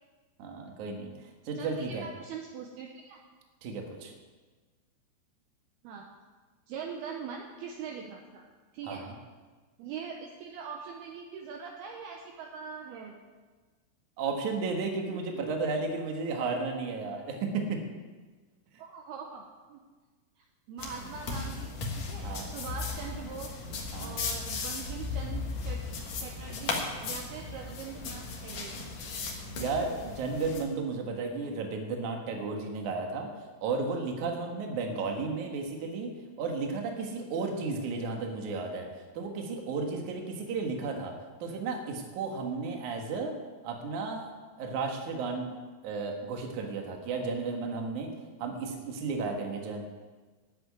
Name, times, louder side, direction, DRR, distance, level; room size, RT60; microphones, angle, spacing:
voice 1, 0.4-2.1 3.6-4.1 8.8-9.1 14.2-17.8 22.2-22.5 23.9-24.2 29.5-33.3 33.6-36.1 36.4-38.9 39.1-41.1 41.4-43.3 43.6-44.3 44.6-45.5 45.8-48.1 48.4-49.8, right 4 dB, 60° right, 2 dB, 2.0 m, -33 dB
voice 2, 1.6-3.2 5.8-6.1 6.7-8.4 8.7-9.1 9.8-13.2 15.1-15.6 18.8-19.8 20.7-21.7 22.0-23.6 24.0-25.9 26.2-28.8, right 6 dB, 80° right, 1 dB, 2.2 m, -42 dB
sound 1, 20.8-30.6, left 4 dB, 65° left, 1.6 m, -36 dB
10.5 x 8.0 x 9.5 m, 1.4 s
omnidirectional pair, 5.7 m